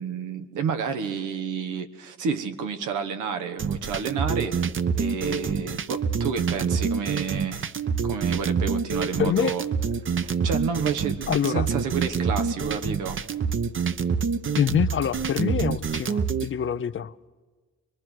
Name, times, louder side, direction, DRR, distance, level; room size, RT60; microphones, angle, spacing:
voice 1, 0.0-4.6 5.0-7.6 8.0-9.6 10.2-13.2, right 6 dB, 90° right, 1.5 m, -30 dB
sound 1, 3.6-16.5, right 6 dB, 40° right, 0.9 m, -26 dB
voice 2, 9.2-9.5 11.3-11.7 14.6-17.3, left 8 dB, 45° left, 0.7 m, -25 dB
24.5 x 21.0 x 6.2 m
cardioid pair, 90°, 30 cm